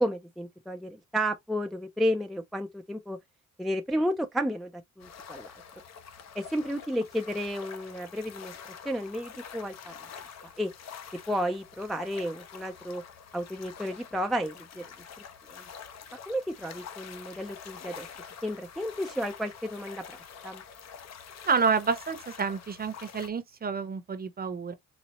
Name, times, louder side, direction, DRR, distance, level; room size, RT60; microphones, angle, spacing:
voice 1, 0.0-3.2 3.6-4.7 5.0-5.5 6.4-8.5 8.9-9.9 10.6-10.7 11.3-13.0 13.3-14.8 15.6-15.7 16.3-18.1 18.4-20.2 20.4-20.6, equal, ahead, 0.4 m, -32 dB
sound 1, 5.0-23.3, left 7 dB, 60° left, 0.7 m, -46 dB
voice 2, 21.5-24.7, right 5 dB, 30° right, 0.8 m, -29 dB
4.2 x 2.0 x 2.9 m
cardioid pair, 90°, 30 cm